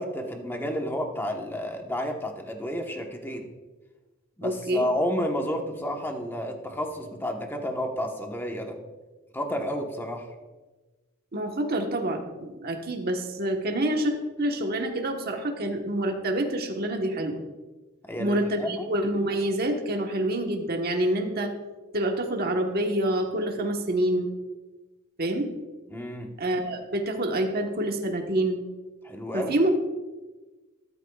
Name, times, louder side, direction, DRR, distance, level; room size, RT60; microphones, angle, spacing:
voice 1, 0.0-3.5 4.4-8.8 9.3-10.3 18.0-18.9 25.9-26.3 29.0-29.6, equal, 10° left, 3 dB, 1.2 m, -31 dB
voice 2, 4.4-4.9 11.3-17.4 18.2-21.5 21.9-24.3 25.2-25.5 26.4-28.6 29.3-29.7, right 1 dB, 50° right, 3 dB, 1.2 m, -27 dB
13.5 x 12.5 x 2.4 m, 1.2 s
head